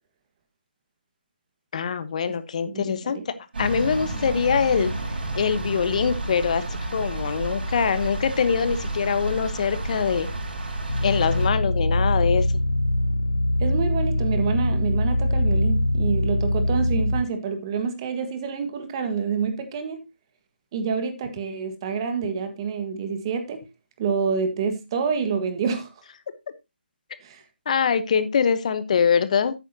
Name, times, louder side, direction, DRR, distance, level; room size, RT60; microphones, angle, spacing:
voice 1, 1.7-4.9 5.3-10.3 11.0-12.5 27.7-29.5, left 6 dB, 40° left, 1.0 m, -23 dB
voice 2, 2.6-3.1 13.6-20.0 20.7-23.6 24.0-25.9 27.2-27.4, right 6 dB, 25° right, 1.5 m, -27 dB
sound 1, 3.5-11.5, right 2 dB, 65° right, 5.5 m, -30 dB
sound 2, 10.9-17.2, left 1 dB, 70° left, 1.9 m, -23 dB
11.0 x 9.0 x 2.8 m
figure-of-eight pair, 160°, 6 cm